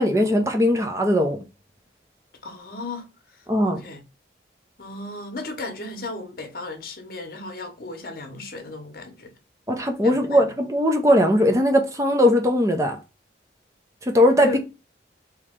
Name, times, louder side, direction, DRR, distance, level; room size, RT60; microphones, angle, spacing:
voice 1, 0.0-1.4 3.5-3.8 9.7-13.0 14.0-14.6, left 1 dB, 15° right, 0.6 m, -19 dB
voice 2, 2.4-3.1 3.3-4.0 4.8-9.3 10.0-10.4 14.4-14.6, left 2 dB, 50° left, 1.0 m, -35 dB
3.0 x 3.0 x 3.6 m
head